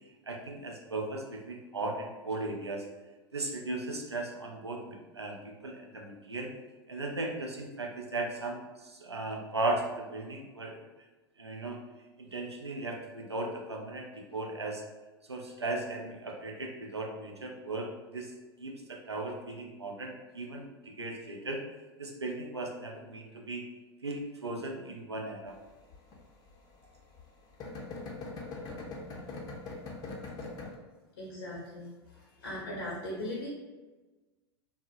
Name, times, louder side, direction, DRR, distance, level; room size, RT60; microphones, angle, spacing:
voice 1, 0.3-2.9 3.3-6.5 6.9-10.8 11.4-11.8 12.2-14.8 15.3-18.3 18.6-21.6 22.0-23.6 24.0-25.6, right 2 dB, 90° right, 1 dB, 0.4 m, -37 dB
sound 1, 25.5-30.8, left 3 dB, 30° left, 0.5 m, -42 dB
voice 2, 31.2-33.5, left 1 dB, 70° left, -3 dB, 0.6 m, -39 dB
2.7 x 2.0 x 2.5 m, 1.2 s
figure-of-eight pair, 85°, 14 cm